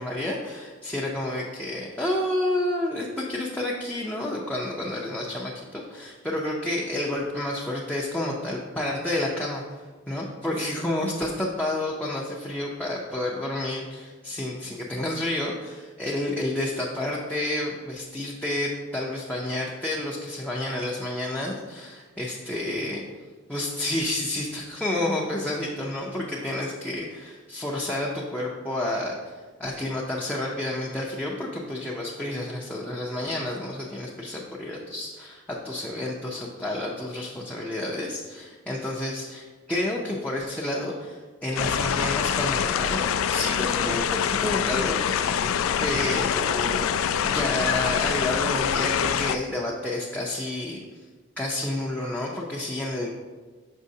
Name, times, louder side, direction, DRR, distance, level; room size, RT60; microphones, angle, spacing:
voice 1, 0.0-23.0 23.5-45.5 45.8-47.0 47.2-50.8 51.4-53.1, left 1 dB, 5° left, -4 dB, 0.5 m, -30 dB
sound 1, 41.6-49.4, left 8 dB, 85° left, 0.3 m, -25 dB
6.3 x 5.5 x 2.7 m, 1.4 s
head